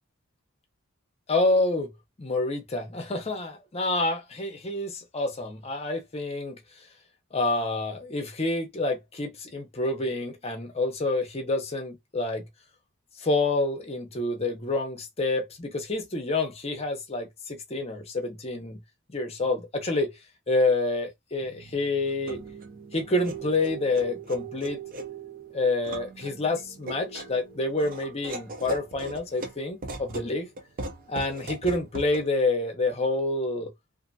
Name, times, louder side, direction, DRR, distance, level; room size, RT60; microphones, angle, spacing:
voice 1, 1.3-1.9 2.2-6.6 7.3-12.5 13.2-18.8 19.1-20.1 20.5-22.4 22.9-24.8 25.5-30.5 31.1-33.7, left 2 dB, 30° left, 0.7 m, -28 dB
sound 1, 21.4-32.2, right 3 dB, 45° right, 0.5 m, -39 dB
2.6 x 2.5 x 2.6 m
head